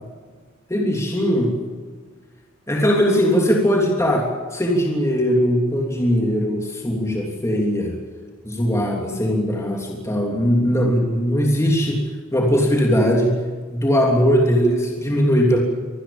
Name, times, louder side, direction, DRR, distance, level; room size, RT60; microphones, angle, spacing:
voice 1, 0.7-1.5 2.7-8.0 8.4-12.0 12.3-13.4 13.7-15.6, equal, 15° left, -1 dB, 3.2 m, -19 dB
25.0 x 19.0 x 7.3 m, 1.5 s
head